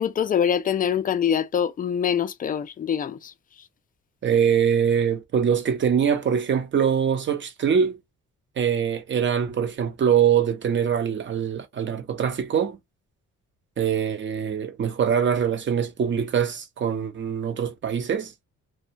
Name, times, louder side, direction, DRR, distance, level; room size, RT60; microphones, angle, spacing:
voice 1, 0.0-3.3, left 8 dB, 30° left, 0.3 m, -24 dB
voice 2, 4.2-8.0 8.6-12.8 13.8-18.3, right 7 dB, 40° right, 0.7 m, -23 dB
2.4 x 2.1 x 2.7 m
cardioid pair, 90°, 30 cm